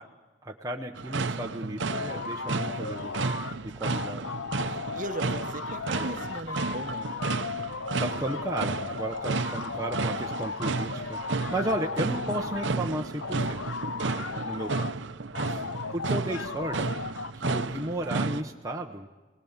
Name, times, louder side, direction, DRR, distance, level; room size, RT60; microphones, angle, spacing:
voice 1, 0.4-3.4 3.6-4.3 8.0-13.6 14.4-14.9 15.5-15.6 15.9-16.9 17.3-19.1, right 1 dB, 15° right, 1 dB, 0.8 m, -34 dB
sound 1, 1.0-18.4, right 3 dB, 60° right, 0.7 m, -32 dB
sound 2, 1.9-3.5 3.8-12.7 13.2-14.9 15.3-17.7, left 5 dB, 70° left, 0.6 m, -36 dB
voice 2, 4.9-7.1 14.3-14.6, right 2 dB, 40° right, 8 dB, 1.0 m, -37 dB
23.5 x 18.5 x 7.2 m, 1.2 s
head